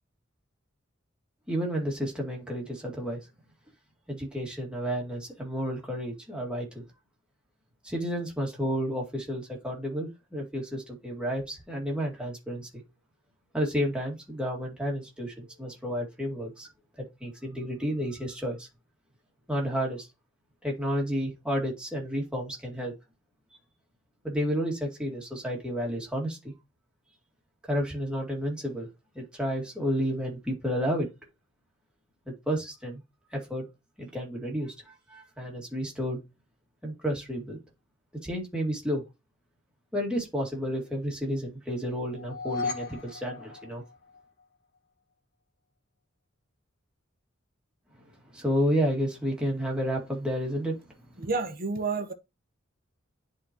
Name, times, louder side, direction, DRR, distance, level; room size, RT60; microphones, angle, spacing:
voice 1, 1.5-3.2 4.1-6.8 7.8-12.7 13.5-16.7 17.2-18.7 19.5-20.1 20.6-22.9 24.2-26.4 27.7-28.9 29.1-31.1 32.3-33.0 33.3-33.6 34.0-34.7 35.1-36.2 36.8-37.6 38.2-39.0 39.9-43.8 48.3-50.7, equal, 5° right, 2.2 m, -31 dB
sound 1, 42.1-44.4, left 4 dB, 55° left, 1.5 m, -36 dB
voice 2, 51.2-52.1, right 4 dB, 45° right, 1.0 m, -30 dB
10.5 x 4.0 x 2.9 m
head